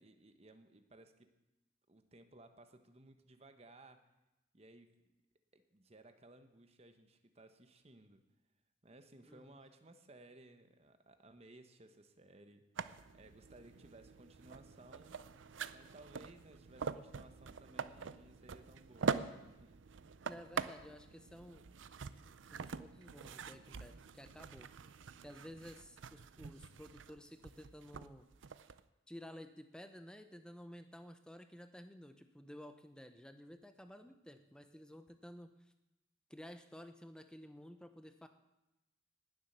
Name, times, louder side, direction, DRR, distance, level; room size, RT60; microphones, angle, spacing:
voice 1, 0.0-1.3 1.9-4.1 4.5-5.0 5.5-8.2 8.8-12.7 13.1-15.2 15.7-19.8, right 2 dB, 35° right, 8 dB, 1.0 m, -60 dB
voice 2, 9.3-9.6 20.2-21.7 22.5-24.7 25.2-28.3 29.1-35.7 36.3-38.3, equal, 5° left, 8 dB, 0.7 m, -53 dB
sound 1, 12.8-28.8, right 5 dB, 80° right, 0.5 m, -44 dB
19.0 x 7.3 x 6.7 m, 0.98 s
head